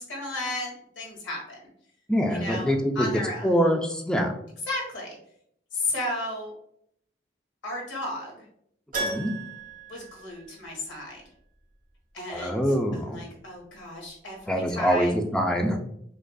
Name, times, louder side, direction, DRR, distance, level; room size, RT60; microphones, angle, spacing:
voice 1, 0.0-1.6 2.3-3.5 4.7-5.2 5.7-6.5 7.6-8.3 9.9-11.2 12.1-12.6 12.9-15.1, left 2 dB, 85° left, -2 dB, 1.4 m, -34 dB
voice 2, 2.1-3.1 3.4-4.3 9.0-9.3 12.3-13.2 14.5-15.8, equal, 5° left, 3 dB, 0.4 m, -24 dB
Keyboard (musical), 8.9-11.0 11.2-11.3 14.0-14.1 14.4-14.5, right 2 dB, 45° right, 1.1 m, -35 dB
4.9 x 2.4 x 2.2 m, 0.69 s
head